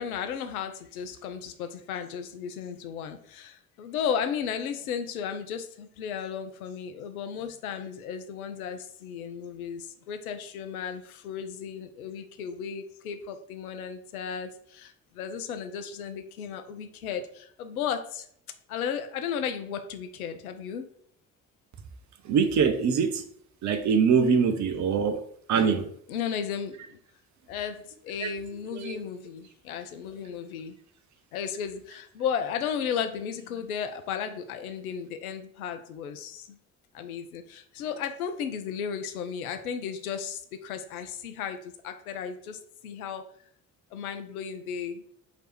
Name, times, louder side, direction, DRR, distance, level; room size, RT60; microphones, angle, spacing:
voice 1, 0.0-18.3 18.7-20.8 26.1-27.0 27.5-30.8 31.3-36.6 36.9-43.2 43.9-45.0, left 7 dB, 80° left, 8 dB, 0.5 m, -34 dB
voice 2, 22.2-23.2 23.6-25.2 25.5-25.9 28.2-28.3 28.7-29.0, right 6 dB, 40° right, 8 dB, 0.6 m, -23 dB
3.1 x 2.9 x 4.3 m, 0.64 s
figure-of-eight pair, 45°, 43 cm